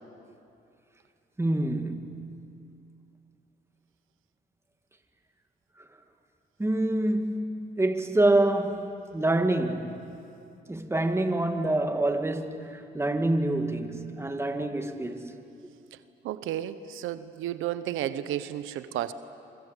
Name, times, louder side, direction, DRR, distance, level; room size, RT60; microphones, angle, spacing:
voice 1, 1.4-2.5 6.6-10.0 10.7-15.3, right 1 dB, 15° right, 2.0 m, -27 dB
voice 2, 16.2-19.1, right 12 dB, 85° right, 0.9 m, -32 dB
25.5 x 24.5 x 8.2 m
cardioid pair, 90°, 20 cm